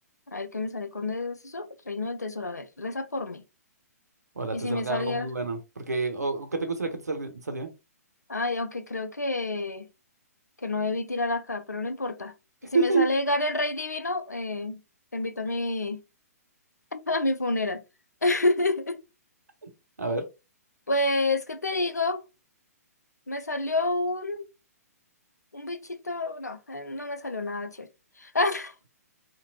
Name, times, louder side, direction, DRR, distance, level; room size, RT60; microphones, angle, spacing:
voice 1, 0.3-3.4 4.5-5.3 8.3-9.9 10.6-12.3 12.7-14.8 15.1-16.0 16.9-17.8 18.2-19.0 20.9-22.2 23.3-24.5 25.5-27.9 28.2-29.0, left 2 dB, 85° left, 0.5 m, -29 dB
voice 2, 4.4-7.7 12.7-13.1 20.0-20.3, right 3 dB, 80° right, 0.8 m, -28 dB
2.9 x 2.9 x 2.7 m
figure-of-eight pair, 120°, 9 cm